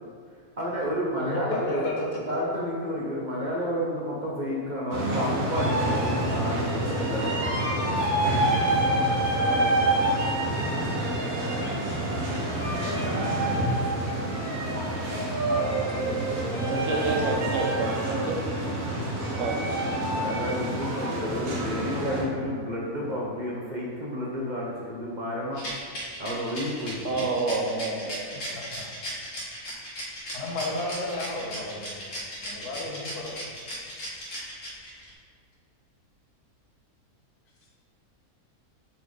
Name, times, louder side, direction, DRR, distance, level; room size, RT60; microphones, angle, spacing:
voice 1, 0.6-7.8 20.0-25.7 26.2-27.2, equal, 40° right, -4 dB, 0.7 m, -31 dB
voice 2, 1.1-2.5 15.1-17.8 20.0-20.1 30.3-32.0 32.4-33.4, left 2 dB, 80° left, -3 dB, 1.6 m, -34 dB
sound 1, 4.9-22.2, right 1 dB, 90° right, 2.0 m, -27 dB
voice 3, 16.6-18.4 19.4-19.6 27.0-28.6, right 3 dB, 65° right, 1 dB, 0.9 m, -29 dB
Rattle, 25.5-35.1, equal, 55° left, 1.9 m, -37 dB
6.4 x 4.5 x 3.7 m, 2.2 s
omnidirectional pair, 1.6 m